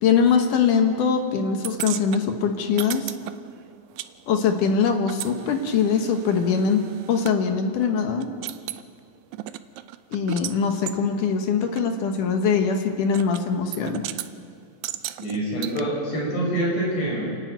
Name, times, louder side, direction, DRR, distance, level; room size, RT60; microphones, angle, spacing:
voice 1, 0.0-3.1 4.3-8.3 10.1-14.1, left 6 dB, 65° left, 5 dB, 2.7 m, -22 dB
sound 1, 1.6-4.1 4.4-7.4 7.8-7.9 8.2-8.8 9.3-10.6 10.9-11.0 11.8-11.9 13.1-13.4 13.7-14.3 14.8-15.8, right 14 dB, 90° right, 1.7 m, -35 dB
voice 2, 15.2-17.4, right 1 dB, 45° left, -3 dB, 6.6 m, -26 dB
28.5 x 10.5 x 9.3 m, 2.2 s
omnidirectional pair, 4.2 m